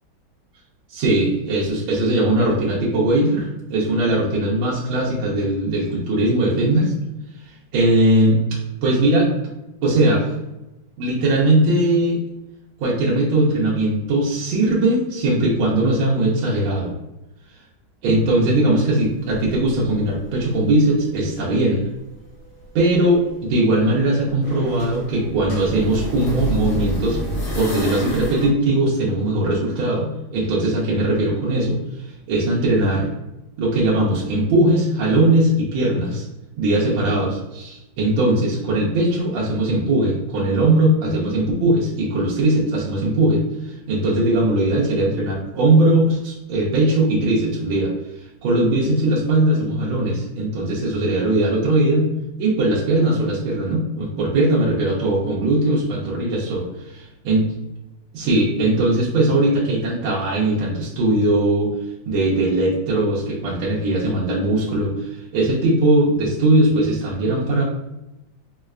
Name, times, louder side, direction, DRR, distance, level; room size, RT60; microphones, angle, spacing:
voice 1, 0.9-6.9 7.7-9.3 9.8-10.3 11.0-12.2 12.8-16.9 18.0-21.8 22.7-27.2 27.5-31.8 32.3-33.1 33.6-36.3 36.6-47.9 48.4-52.1 52.4-56.7 57.2-57.4 58.1-61.7 62.1-67.6, right 1 dB, 80° right, -5 dB, 1.5 m, -19 dB
sound 1, 19.0-21.2 21.6-28.5, equal, 90° left, 1.8 m, -30 dB
4.7 x 2.1 x 2.3 m, 0.96 s
omnidirectional pair, 2.2 m